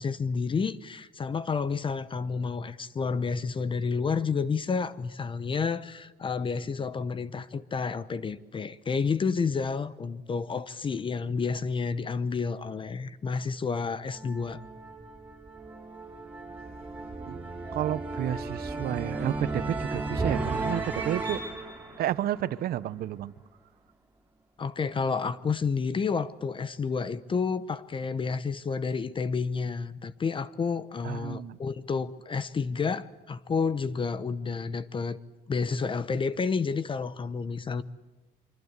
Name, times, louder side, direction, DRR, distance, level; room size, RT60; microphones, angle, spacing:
voice 1, 0.0-14.6 24.6-35.2 35.5-37.8, left 5 dB, 30° left, 0.9 m, -30 dB
sound 1, 14.0-23.1, right 3 dB, 10° right, 6.4 m, -35 dB
voice 2, 17.7-21.4 22.0-23.3 31.0-31.6, right 12 dB, 65° right, 0.9 m, -31 dB
25.0 x 24.0 x 8.2 m
cardioid pair, 110°, 17 cm